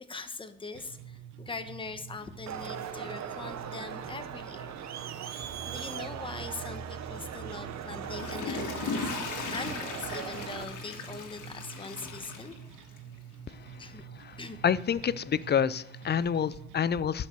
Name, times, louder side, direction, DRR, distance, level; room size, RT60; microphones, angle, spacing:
voice 1, 0.0-4.8 5.2-9.1 9.5-12.6 13.8-14.0 14.4-14.6, left 3 dB, 15° left, 8 dB, 1.1 m, -42 dB
sound 1, 0.7-16.7, right 7 dB, 85° right, 1.0 m, -48 dB
Crowd, 2.5-10.6, right 8 dB, 65° right, 1.0 m, -39 dB
Water / Toilet flush, 7.9-13.2 13.7-13.8, left 5 dB, 85° left, 1.7 m, -38 dB
voice 2, 14.6-17.3, left 8 dB, 35° left, 19 dB, 0.4 m, -28 dB
11.5 x 5.3 x 6.7 m, 0.83 s
cardioid pair, 90°, 30 cm